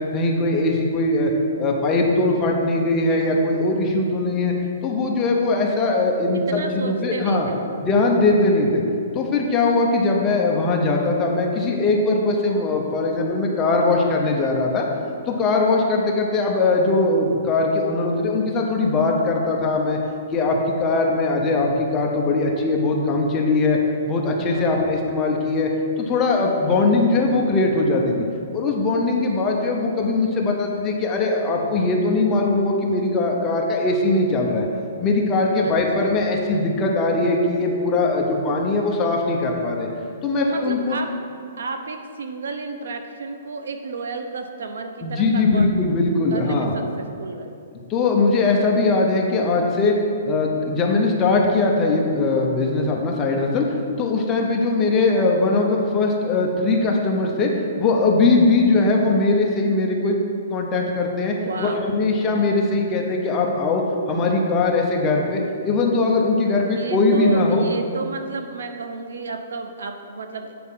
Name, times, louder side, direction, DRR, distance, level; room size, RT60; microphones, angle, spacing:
voice 1, 0.1-1.3 1.6-4.5 4.8-7.5 7.8-8.8 9.1-14.9 15.3-20.0 20.3-23.8 24.0-25.7 26.1-28.2 28.5-34.7 35.0-39.9 40.2-41.0 45.0-46.7 47.9-49.9 50.2-57.5 57.8-60.2 60.5-67.6, left 3 dB, 15° left, 0 dB, 0.6 m, -20 dB
voice 2, 6.3-7.7 24.4-24.8 29.6-29.8 35.6-36.2 40.4-41.1 41.6-45.7 46.3-47.6 61.4-61.9 66.7-70.5, right 3 dB, 90° right, 6 dB, 0.8 m, -32 dB
8.6 x 4.6 x 5.5 m, 2.4 s
hypercardioid pair, 180°, 0 cm